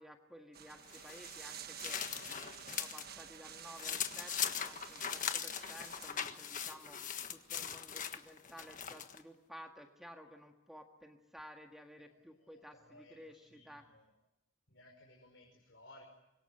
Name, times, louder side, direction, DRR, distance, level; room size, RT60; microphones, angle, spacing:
voice 1, 0.0-2.4 2.7-13.8, equal, ahead, 3 dB, 1.7 m, -54 dB
sound 1, 0.5-6.2, right 9 dB, 50° right, 1.4 m, -51 dB
sound 2, 0.9-3.1 3.4-9.2, left 8 dB, 40° left, 1.5 m, -40 dB
voice 2, 2.1-2.7 12.4-12.5 12.9-14.0 14.7-16.0, left 2 dB, 60° left, 0 dB, 5.4 m, -59 dB
26.0 x 23.0 x 9.0 m, 0.93 s
head